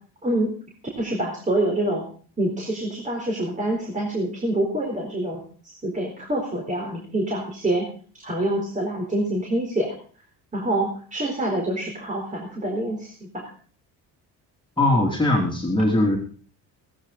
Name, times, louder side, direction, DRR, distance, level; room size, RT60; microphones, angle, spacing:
voice 1, 1.0-2.0 2.4-7.9 8.2-9.9 10.5-13.4, right 1 dB, 20° right, -1 dB, 4.1 m, -26 dB
voice 2, 14.8-16.2, left 1 dB, 15° left, -2 dB, 3.2 m, -20 dB
16.5 x 14.5 x 4.1 m, 0.41 s
cardioid pair, 120°, 38 cm